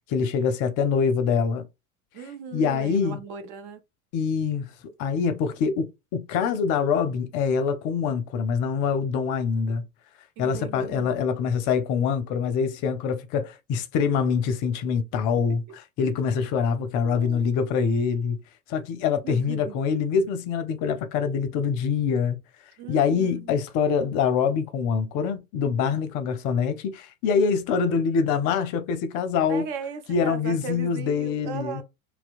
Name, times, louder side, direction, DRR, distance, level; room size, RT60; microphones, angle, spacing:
voice 1, 0.1-1.7 2.5-3.2 4.1-4.7 5.0-9.9 10.4-18.4 18.7-22.4 22.9-29.7 30.1-31.8, left 6 dB, 45° left, 0.5 m, -25 dB
voice 2, 2.1-3.8 10.4-11.2 17.0-17.4 19.2-19.7 22.8-23.6 29.5-31.8, right 6 dB, 45° right, 0.6 m, -37 dB
2.7 x 2.0 x 2.4 m
hypercardioid pair, 80°, 41 cm